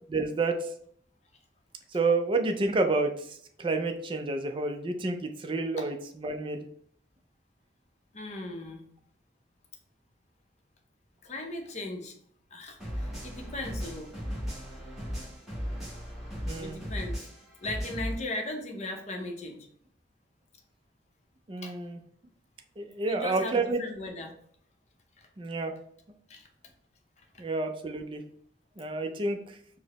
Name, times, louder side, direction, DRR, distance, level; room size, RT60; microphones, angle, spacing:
voice 1, 0.1-0.7 1.9-6.7 16.5-16.8 21.5-22.0 22.8-23.8 25.4-25.7 27.4-28.2 28.8-29.6, right 3 dB, 30° right, 5 dB, 0.4 m, -29 dB
voice 2, 8.1-8.8 11.2-12.2 12.5-14.1 16.6-17.3 17.6-19.7 21.6-21.7 23.0-24.3 25.2-25.3 26.3-26.5, left 2 dB, 40° left, 2 dB, 0.6 m, -37 dB
sound 1, 12.8-18.1, equal, 5° right, 1.2 m, -36 dB
4.6 x 2.0 x 2.9 m, 0.63 s
head